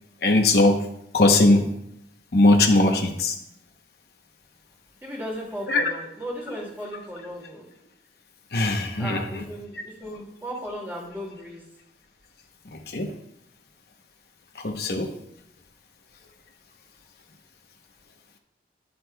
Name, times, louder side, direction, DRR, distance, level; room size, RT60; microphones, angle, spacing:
voice 1, 0.2-0.8 1.1-1.6 2.3-3.3 5.7-5.8 8.5-9.4 12.9-13.1 14.6-15.1, left 2 dB, 60° left, 3 dB, 0.9 m, -19 dB
voice 2, 5.0-7.7 9.0-11.6, equal, 10° right, -3 dB, 2.3 m, -36 dB
11.0 x 7.8 x 2.3 m, 0.79 s
head